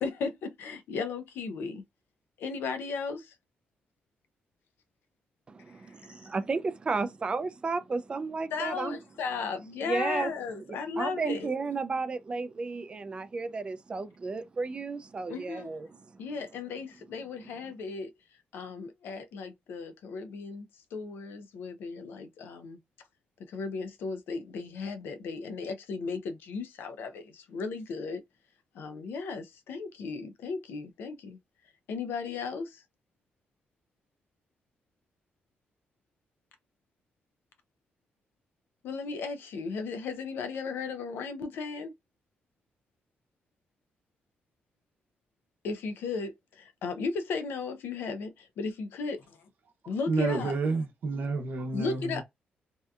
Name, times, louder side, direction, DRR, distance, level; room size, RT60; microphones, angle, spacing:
voice 1, 0.0-1.8 2.4-3.3 6.2-6.3 8.5-11.5 15.3-15.7 16.2-18.1 18.5-20.7 20.9-22.8 23.5-28.2 28.7-31.4 31.9-32.8 38.8-41.9 45.6-49.4 49.9-50.6 51.7-52.2, left 4 dB, 90° left, 0.4 m, -35 dB
voice 2, 5.5-9.0 9.8-10.3 10.7-16.0, right 4 dB, 30° right, 0.3 m, -33 dB
voice 3, 50.1-52.2, right 3 dB, 65° right, 0.7 m, -30 dB
2.6 x 2.3 x 2.3 m
cardioid pair, 130°, 4 cm